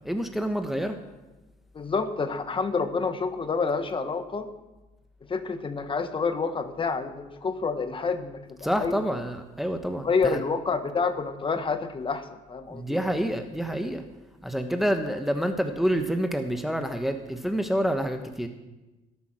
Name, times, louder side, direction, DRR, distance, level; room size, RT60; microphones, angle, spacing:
voice 1, 0.0-1.0 8.6-10.4 12.7-14.0 14.4-18.5, equal, ahead, 6 dB, 1.1 m, -28 dB
voice 2, 1.7-4.5 5.3-9.0 10.0-13.0, left 4 dB, 30° left, 9 dB, 1.4 m, -28 dB
20.5 x 8.5 x 6.2 m, 1.1 s
cardioid pair, 110°, 17 cm